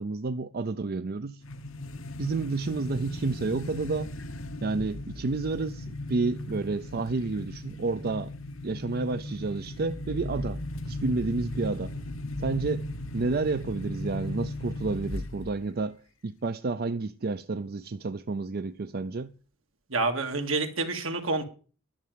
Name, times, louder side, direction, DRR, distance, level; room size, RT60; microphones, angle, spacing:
voice 1, 0.0-1.4 2.2-4.1 4.6-8.3 8.6-11.9 12.4-12.9 13.1-19.3, right 3 dB, 50° right, 0.5 m, -30 dB
sound 1, 1.4-15.7, left 1 dB, 70° left, 1.1 m, -37 dB
voice 2, 19.9-21.4, right 3 dB, 75° right, 2.3 m, -28 dB
11.5 x 6.7 x 9.1 m
head